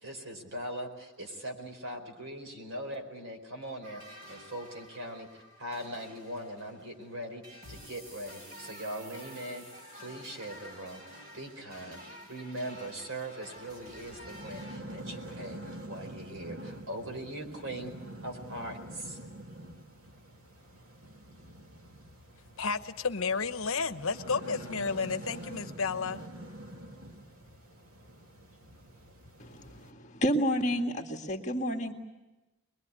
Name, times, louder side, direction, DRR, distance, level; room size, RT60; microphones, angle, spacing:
voice 1, 0.0-9.6 9.9-15.6 15.9-17.9 18.2-19.2, right 1 dB, 60° right, 5 dB, 4.5 m, -41 dB
sound 1, 3.8-14.8, equal, 40° right, 6.7 m, -50 dB
sound 2, 13.6-29.9, right 1 dB, 80° right, 2.8 m, -46 dB
voice 2, 22.6-26.2, left 5 dB, 70° left, 10 dB, 1.0 m, -32 dB
voice 3, 29.4-31.9, equal, 35° left, 2 dB, 2.0 m, -30 dB
24.0 x 21.5 x 9.7 m, 1.1 s
head